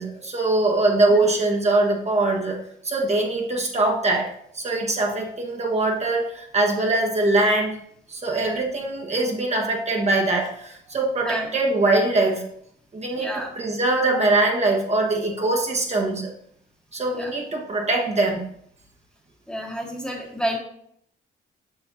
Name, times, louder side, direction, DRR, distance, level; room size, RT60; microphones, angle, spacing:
voice 1, 0.0-7.8 8.1-12.4 12.9-16.3 16.9-18.4, right 2 dB, 35° right, -1 dB, 1.4 m, -22 dB
voice 2, 13.2-13.5 17.1-17.3 19.5-20.6, equal, 5° left, 0 dB, 1.4 m, -29 dB
6.9 x 6.4 x 2.8 m, 0.69 s
cardioid pair, 90°, 20 cm